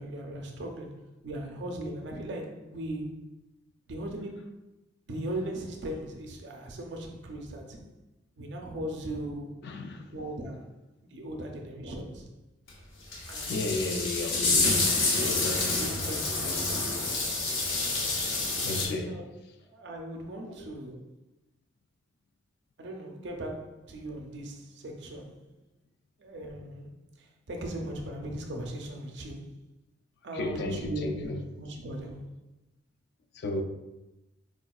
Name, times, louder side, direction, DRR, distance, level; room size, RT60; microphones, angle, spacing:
voice 1, 0.0-3.3 3.9-4.5 5.1-7.8 8.4-9.5 10.1-10.7 11.1-12.3 13.3-13.7 14.4-14.6 15.7-16.6 19.0-19.2 19.7-21.1 22.8-25.6 26.2-29.5 30.2-32.3, right 1 dB, 60° right, 0.5 m, -38 dB
voice 2, 9.6-10.2 13.5-15.8 18.6-19.2 20.5-20.6 30.3-31.4 33.3-33.6, left 2 dB, 55° left, 0.3 m, -34 dB
sound 1, 12.7-12.8 13.1-18.9, left 3 dB, 80° left, 0.7 m, -28 dB
4.2 x 2.3 x 2.3 m
head